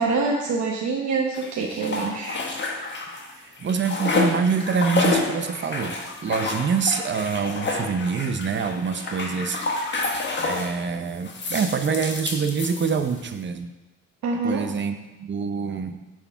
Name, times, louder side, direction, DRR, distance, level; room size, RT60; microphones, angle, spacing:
voice 1, 0.0-2.4 14.2-14.6, right 4 dB, 70° right, -1 dB, 1.1 m, -25 dB
sound 1, 1.3-3.3 3.6-10.8 11.2-13.3, left 3 dB, 40° left, 1.5 m, -29 dB
voice 2, 3.4-9.8 10.4-13.7 14.3-16.0, right 5 dB, 40° right, 8 dB, 0.8 m, -26 dB
8.3 x 4.8 x 5.6 m, 1.1 s
cardioid pair, 90°, 30 cm